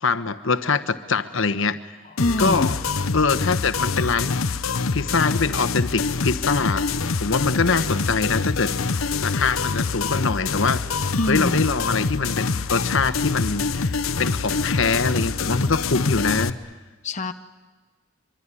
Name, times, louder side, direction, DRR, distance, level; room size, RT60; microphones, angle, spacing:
voice 1, 0.0-1.9 2.4-2.7 3.1-4.4 4.9-6.9 7.2-8.7 9.2-10.8 11.3-16.6, left 4 dB, 70° left, 11 dB, 1.2 m, -23 dB
sound 1, 2.2-16.5, left 4 dB, 85° left, 0.9 m, -25 dB
voice 2, 2.2-2.8 11.2-11.8 17.0-17.3, left 2 dB, 35° left, 7 dB, 0.9 m, -24 dB
24.5 x 24.0 x 9.9 m, 1.3 s
head